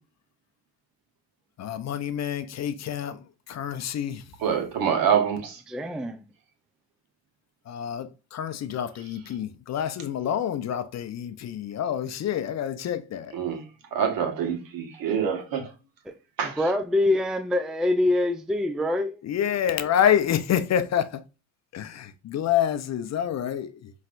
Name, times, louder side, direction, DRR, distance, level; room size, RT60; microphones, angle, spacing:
voice 1, 1.6-4.2 7.7-13.4 19.2-21.2 21.7-23.9, left 9 dB, 45° left, 0.6 m, -27 dB
voice 2, 4.4-5.6 13.3-13.6 13.9-15.7 16.4-16.6, right 7 dB, 65° right, 1.6 m, -26 dB
voice 3, 5.7-6.2 16.6-19.2, left 1 dB, ahead, 0.4 m, -24 dB
5.4 x 3.2 x 2.5 m
supercardioid pair, 85°, 38 cm